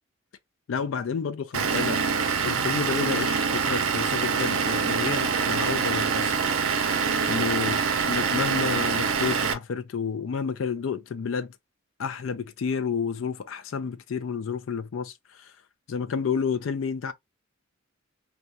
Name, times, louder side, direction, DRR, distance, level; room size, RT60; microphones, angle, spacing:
voice 1, 0.7-2.0 2.4-6.3 7.3-7.8 8.1-11.5 12.0-15.5 15.9-17.1, left 6 dB, 70° left, 0.4 m, -30 dB
Vehicle / Engine, 1.5-9.5, right 6 dB, 90° right, 0.5 m, -25 dB
2.3 x 2.2 x 2.6 m
head